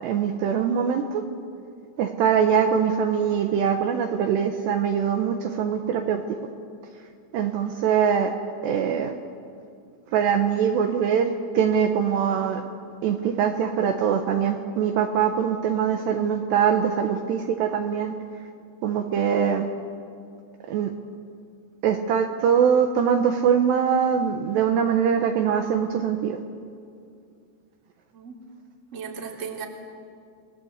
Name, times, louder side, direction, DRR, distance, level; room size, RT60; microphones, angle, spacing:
voice 1, 0.0-1.2 2.0-6.2 7.3-8.3 8.6-9.2 10.1-12.6 13.0-18.1 18.8-19.7 20.7-20.9 21.8-26.4, right 7 dB, 70° right, 4 dB, 2.8 m, -23 dB
voice 2, 28.9-29.7, right 6 dB, 20° right, 0 dB, 2.2 m, -35 dB
29.0 x 21.0 x 8.1 m, 2.4 s
omnidirectional pair, 5.7 m